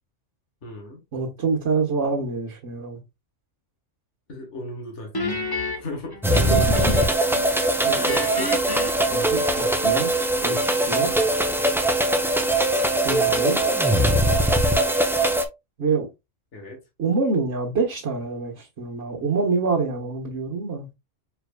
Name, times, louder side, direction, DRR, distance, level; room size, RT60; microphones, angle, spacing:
voice 1, 0.6-1.0 4.3-5.6 5.8-6.2 7.9-8.5 16.5-16.8, left 1 dB, 65° left, 1.8 m, -37 dB
voice 2, 1.1-3.0 6.5-7.0 7.3-7.5 7.8-8.2 9.1-10.1 10.4-11.1 13.0-13.6 15.8-16.1 17.0-20.9, right 4 dB, 65° right, 1.6 m, -26 dB
Guitar, 5.1-7.3 7.6-9.9, left 2 dB, 20° left, 0.9 m, -31 dB
sound 1, 6.2-15.4, right 1 dB, 5° right, 0.3 m, -21 dB
4.8 x 4.6 x 2.3 m
omnidirectional pair, 1.3 m